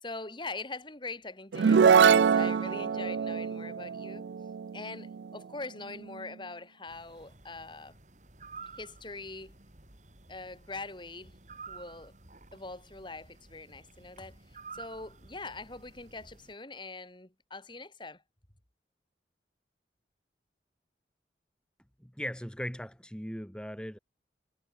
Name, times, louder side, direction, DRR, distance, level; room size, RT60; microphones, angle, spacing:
voice 1, 0.0-4.3 4.7-8.0 8.8-9.5 10.3-11.4 11.7-12.1 12.5-14.4 14.7-18.2, left 3 dB, 25° left, 2.9 m, -42 dB
sound 1, 1.5-5.1, right 6 dB, 80° right, 0.4 m, -24 dB
sound 2, 6.9-16.5, right 4 dB, 45° right, 4.1 m, -51 dB
voice 2, 22.0-24.0, equal, 5° left, 2.0 m, -38 dB
head